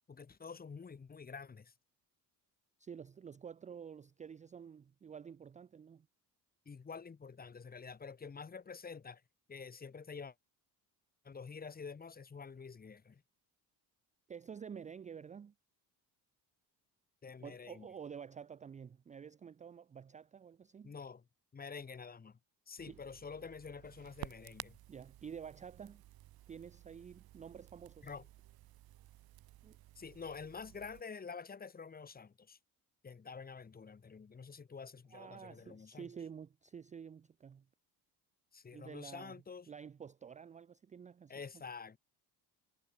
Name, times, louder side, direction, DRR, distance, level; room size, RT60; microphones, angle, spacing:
voice 1, 0.1-1.7 6.6-9.2 9.5-10.3 11.2-13.2 17.2-17.9 20.8-21.2 21.5-22.4 22.7-24.8 28.0-28.3 29.9-32.6 33.0-36.1 38.5-39.7 41.3-42.0, left 5 dB, 25° left, 1.5 m, -48 dB
voice 2, 2.8-6.1 14.3-15.5 17.4-20.9 22.9-23.0 24.9-26.0 26.5-28.1 29.6-29.8 35.1-37.6 38.7-41.3, right 7 dB, 20° right, 0.4 m, -50 dB
Crackle, 22.8-31.0, right 15 dB, 65° right, 1.3 m, -54 dB
cardioid pair, 135°, 39 cm